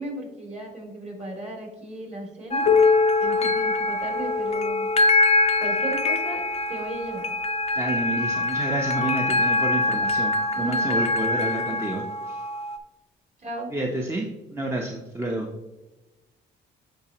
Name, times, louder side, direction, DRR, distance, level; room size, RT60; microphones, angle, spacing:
voice 1, 0.0-2.7 3.2-4.9 5.6-6.4 6.7-7.3 10.5-10.9 11.6-11.8 13.4-13.7, right 2 dB, 35° right, 1 dB, 2.4 m, -35 dB
sound 1, 2.5-12.8, left 2 dB, 30° left, 0.6 m, -24 dB
Piano, 2.6-8.0 8.8-8.9 9.4-9.5 10.3-10.4 11.4-11.5, left 6 dB, 70° left, 0.7 m, -26 dB
voice 2, 7.7-12.4 13.7-15.5, right 2 dB, 15° right, 0 dB, 0.8 m, -30 dB
10.0 x 3.9 x 3.0 m, 1.0 s
cardioid pair, 90°, 20 cm